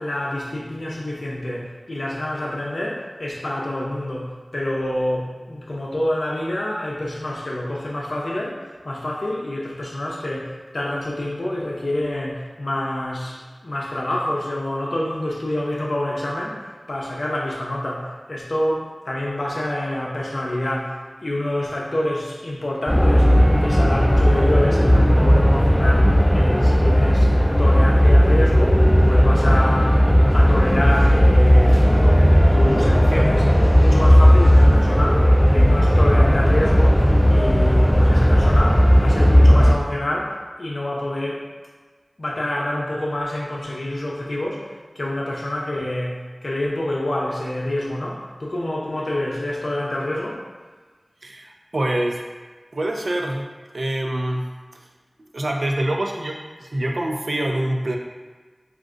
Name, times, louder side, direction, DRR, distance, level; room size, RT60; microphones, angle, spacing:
voice 1, 0.0-30.0 30.3-31.9 32.5-41.5 42.2-50.4, left 1 dB, 80° left, -3 dB, 0.5 m, -27 dB
sound 1, 22.9-39.7, equal, 5° left, 0.4 m, -15 dB
voice 2, 51.2-52.2 52.7-53.5 53.7-54.6 55.3-58.0, right 1 dB, 80° right, 1 dB, 0.3 m, -25 dB
2.5 x 2.4 x 3.6 m, 1.4 s
wide cardioid pair, 50°, 0 cm